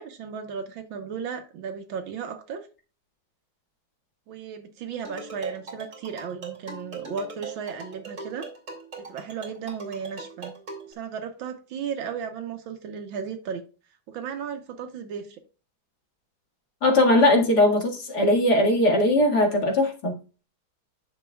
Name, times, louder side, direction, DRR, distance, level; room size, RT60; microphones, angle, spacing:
voice 1, 0.0-2.7 4.3-8.5 9.1-10.5 10.9-13.6 14.1-15.4, right 6 dB, 85° right, 1.8 m, -35 dB
sound 1, 5.0-10.9, right 4 dB, 40° right, 2.8 m, -40 dB
voice 2, 16.8-20.2, left 1 dB, 55° left, 2.5 m, -20 dB
10.0 x 6.6 x 2.3 m
omnidirectional pair, 2.1 m